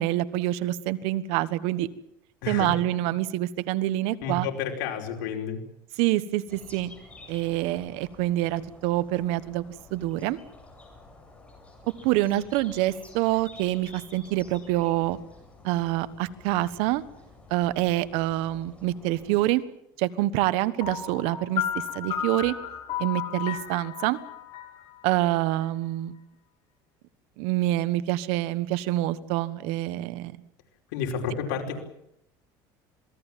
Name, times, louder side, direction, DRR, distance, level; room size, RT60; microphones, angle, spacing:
voice 1, 0.0-1.9 2.5-4.5 6.0-6.9 7.3-9.6 9.9-10.4 12.0-15.2 15.6-17.0 17.5-19.6 20.0-22.5 23.0-24.2 25.0-26.2 27.4-30.4, right 15 dB, 70° right, 15 dB, 1.4 m, -26 dB
voice 2, 2.4-2.7 4.2-5.6 30.9-31.8, left 6 dB, 85° left, 2 dB, 4.9 m, -30 dB
sound 1, 6.5-19.5, left 2 dB, 10° left, 8.0 m, -51 dB
Piano, 20.8-25.7, left 9 dB, 45° left, 7.4 m, -33 dB
27.0 x 19.5 x 7.5 m, 0.79 s
cardioid pair, 130°, 11 cm